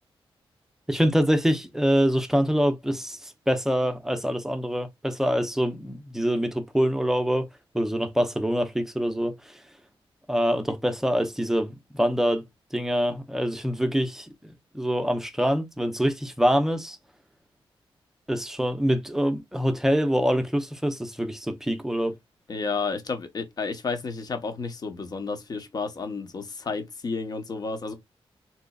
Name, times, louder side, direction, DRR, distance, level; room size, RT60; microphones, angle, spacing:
voice 1, 0.9-7.5 7.7-9.4 10.3-12.4 12.7-14.3 14.7-17.0 18.3-22.2, equal, 5° right, 0.6 m, -25 dB
voice 2, 22.5-27.9, left 4 dB, 45° left, 0.9 m, -31 dB
3.8 x 2.9 x 2.3 m
wide cardioid pair, 120°, 10 cm